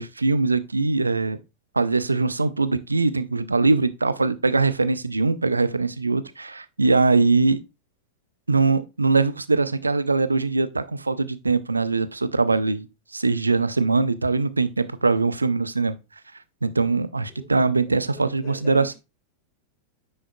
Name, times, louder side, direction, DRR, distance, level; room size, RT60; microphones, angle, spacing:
voice 1, 0.0-1.4 1.8-7.6 8.5-12.9 13.1-16.0 16.6-18.9, right 3 dB, 80° right, 0.5 m, -22 dB
voice 2, 17.8-18.9, left 6 dB, 40° left, 2.3 m, -42 dB
9.7 x 5.5 x 2.2 m
figure-of-eight pair, 90°, 0 cm